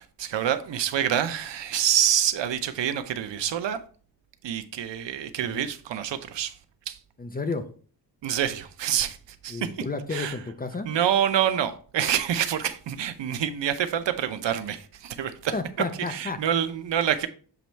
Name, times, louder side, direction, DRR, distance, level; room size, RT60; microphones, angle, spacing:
voice 1, 0.0-3.8 4.4-6.5 6.9-7.0 8.2-9.8 10.1-10.4 10.8-15.5 16.1-17.3, right 10 dB, 85° right, 0.7 m, -27 dB
voice 2, 7.2-7.7 9.5-10.9 15.5-16.4, left 3 dB, 20° left, 0.5 m, -32 dB
7.0 x 3.1 x 4.4 m
wide cardioid pair, 155°, 43 cm